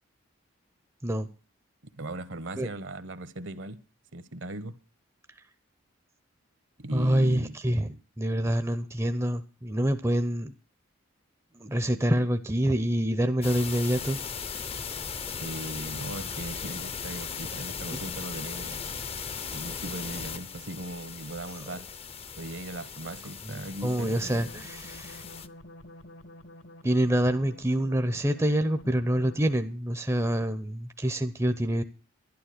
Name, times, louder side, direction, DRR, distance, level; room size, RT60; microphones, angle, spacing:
voice 1, 1.9-3.8 4.1-4.8 6.8-7.5 15.4-18.9 19.5-21.9 22.4-24.5, right 1 dB, 60° right, 1.0 m, -38 dB
voice 2, 6.9-10.5 11.5-14.2 17.9-18.0 23.4-23.5 23.8-25.2 26.8-31.8, right 1 dB, 15° right, 0.6 m, -26 dB
sound 1, 13.4-25.5, left 6 dB, 25° left, 0.6 m, -38 dB
sound 2, 24.0-29.7, left 1 dB, 60° left, 1.1 m, -49 dB
11.5 x 11.5 x 6.6 m
head